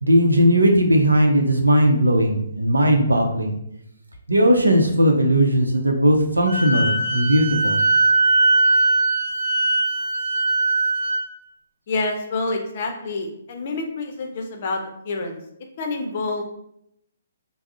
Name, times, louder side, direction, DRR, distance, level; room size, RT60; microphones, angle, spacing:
voice 1, 0.0-3.6 4.3-7.8, equal, 90° right, 3 dB, 0.5 m, -18 dB
Wind instrument woodwind instrument, 6.5-11.2, right 2 dB, 45° right, 0.6 m, -20 dB
voice 2, 11.9-15.4 15.8-16.4, left 3 dB, 45° left, 3 dB, 0.5 m, -27 dB
3.5 x 2.0 x 2.5 m, 0.75 s
figure-of-eight pair, 135°, 0 cm